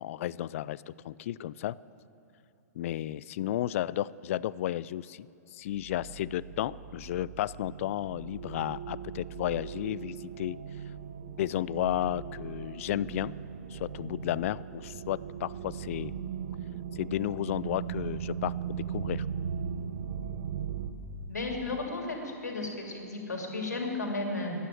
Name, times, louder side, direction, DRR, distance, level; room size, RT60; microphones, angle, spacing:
voice 1, 0.0-1.8 2.8-10.6 11.4-13.4 13.7-16.1 16.9-19.2, left 13 dB, 55° left, 20 dB, 0.3 m, -33 dB
sound 1, 5.7-20.9, right 8 dB, 50° right, 1.0 m, -38 dB
voice 2, 21.3-24.5, left 3 dB, 90° left, 1 dB, 2.7 m, -34 dB
12.5 x 9.4 x 9.3 m, 2.8 s
hypercardioid pair, 120°, 9 cm